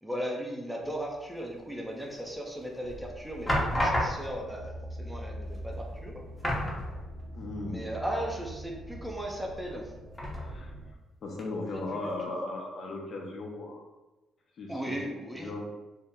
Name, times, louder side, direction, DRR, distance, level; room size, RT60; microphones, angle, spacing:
voice 1, 0.0-4.7 5.0-6.2 7.7-9.9 11.7-12.3 14.7-15.5, equal, ahead, -1 dB, 0.6 m, -37 dB
sound 1, 2.2-2.7 3.5-4.5 5.5-5.6 5.9-6.0 6.4-7.4 7.7-7.8 10.1-10.8 11.4-11.5, equal, 20° left, 0.9 m, -31 dB
sound 2, 2.8-10.9, right 1 dB, 80° right, 0.3 m, -43 dB
voice 2, 7.3-7.9 10.3-10.7 11.2-13.8 14.6-15.0 15.4-15.7, left 2 dB, 55° left, -1 dB, 0.7 m, -37 dB
2.8 x 2.0 x 3.5 m, 1.1 s
cardioid pair, 90°, 0 cm